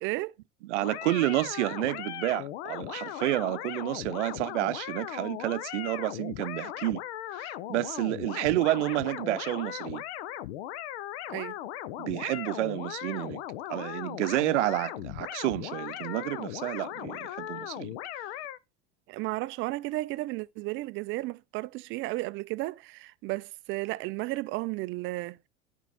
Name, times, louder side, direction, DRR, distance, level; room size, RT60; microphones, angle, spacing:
voice 1, 0.0-0.3 11.3-11.5 19.1-25.5, right 19 dB, 35° right, 0.4 m, -33 dB
voice 2, 0.6-7.0 7.3-10.0 12.0-13.4 13.7-18.3, right 17 dB, 80° right, 0.6 m, -30 dB
sound 1, 0.8-18.6, left 13 dB, 65° left, 0.7 m, -38 dB
10.5 x 5.3 x 3.4 m
supercardioid pair, 120°, 34 cm